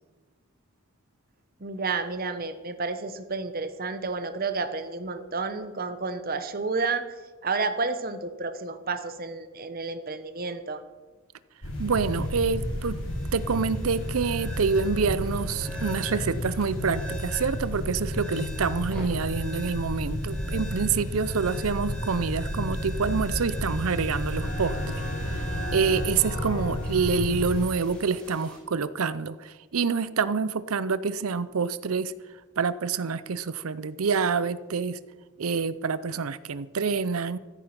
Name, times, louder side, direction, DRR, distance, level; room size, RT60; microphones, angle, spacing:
voice 1, 1.6-7.0 7.4-10.8, right 4 dB, 45° right, 11 dB, 1.0 m, -31 dB
sound 1, 11.6-27.6, equal, 75° left, 3.7 m, -32 dB
sound 2, 11.7-28.6, equal, 5° left, 4.2 m, -44 dB
voice 2, 11.8-13.0 13.3-24.8 25.3-25.4 25.7-32.1 32.6-35.0 35.4-37.4, right 5 dB, 85° right, 16 dB, 0.6 m, -27 dB
15.0 x 9.3 x 5.9 m, 1.3 s
head